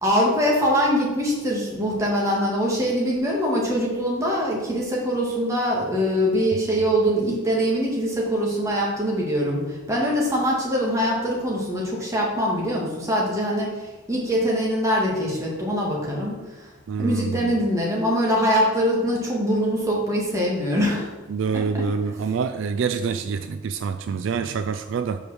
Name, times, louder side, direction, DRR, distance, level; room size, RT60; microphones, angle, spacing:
voice 1, 0.0-16.7 17.0-21.1 21.5-21.9, equal, 15° right, -3 dB, 1.7 m, -23 dB
voice 2, 16.9-17.6 21.3-25.2, right 5 dB, 65° right, 9 dB, 0.3 m, -26 dB
5.3 x 5.1 x 6.2 m, 1.2 s
head